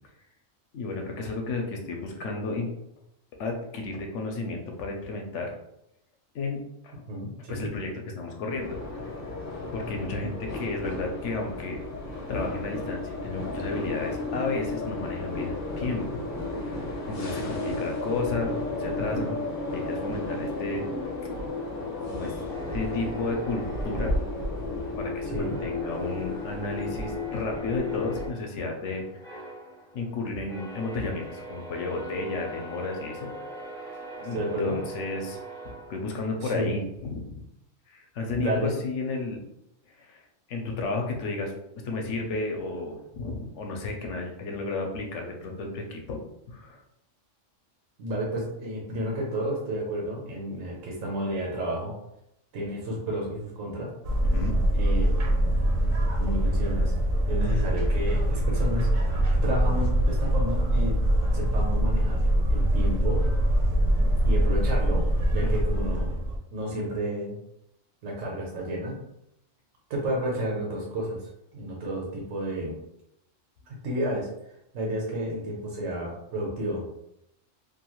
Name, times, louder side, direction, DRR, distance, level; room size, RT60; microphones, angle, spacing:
voice 1, 0.7-2.7 3.4-5.5 6.3-6.9 7.5-9.1 9.7-16.3 16.5-19.4 19.7-20.9 22.1-22.4 22.7-24.2 25.0-29.5 29.9-33.3 34.2-35.4 35.9-37.4 37.9-39.4 39.9-41.6 41.8-46.2 46.5-46.8 54.2-54.6 65.4-66.0, left 3 dB, 70° left, 2 dB, 0.9 m, -33 dB
voice 2, 7.1-7.7 25.3-25.6 34.3-34.8 36.4-36.7 38.4-38.8 48.0-51.9 52.5-53.9 54.7-55.2 56.1-56.9 57.2-61.0 61.3-62.2 62.5-63.2 64.2-65.0 65.3-66.1 66.5-67.3 68.0-69.0 69.9-72.7 73.7-74.3 74.7-76.8, equal, 90° right, -2 dB, 1.1 m, -31 dB
sound 1, 8.6-28.3, left 2 dB, 45° left, 0.8 m, -33 dB
sound 2, 22.5-24.9 25.3-36.5, right 2 dB, 5° left, 0.5 m, -43 dB
sound 3, 54.0-66.4, right 1 dB, 60° right, 0.7 m, -23 dB
2.6 x 2.3 x 3.0 m, 0.81 s
omnidirectional pair, 1.3 m